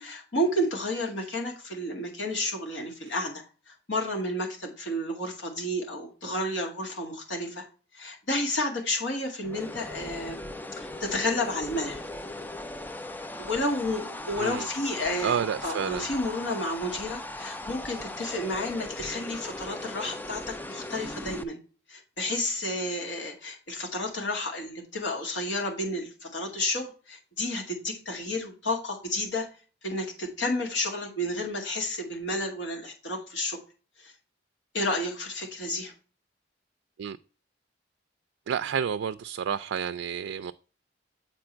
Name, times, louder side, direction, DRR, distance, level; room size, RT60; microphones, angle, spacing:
voice 1, 0.0-7.7 7.9-10.4 10.8-12.0 13.4-21.6 21.9-29.5 29.8-33.6 34.0-34.1 34.7-35.9, left 1 dB, 80° left, 2.3 m, -31 dB
sound 1, 9.4-21.4, left 1 dB, 10° left, 0.4 m, -39 dB
voice 2, 14.3-14.7 15.2-16.1 37.0-37.2 38.5-40.5, right 7 dB, 90° right, 0.3 m, -30 dB
7.8 x 4.4 x 4.4 m
head